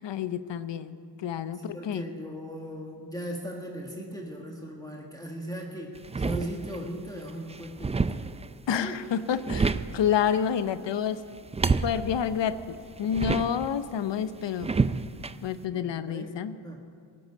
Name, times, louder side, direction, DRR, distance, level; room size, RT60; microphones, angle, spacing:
voice 1, 0.0-2.0 8.7-11.2 11.8-14.7 15.4-16.6, left 8 dB, 70° left, 13 dB, 0.8 m, -29 dB
voice 2, 1.5-8.4 8.7-9.0 15.7-16.4 16.6-16.8, equal, 10° left, -1 dB, 1.6 m, -38 dB
sound 1, 6.0-6.9 7.3-8.6 9.1-10.1 11.3-13.8 14.6-15.3, right 4 dB, 15° right, 0.3 m, -29 dB
17.0 x 7.9 x 8.4 m, 2.3 s
cardioid pair, 70°, 45 cm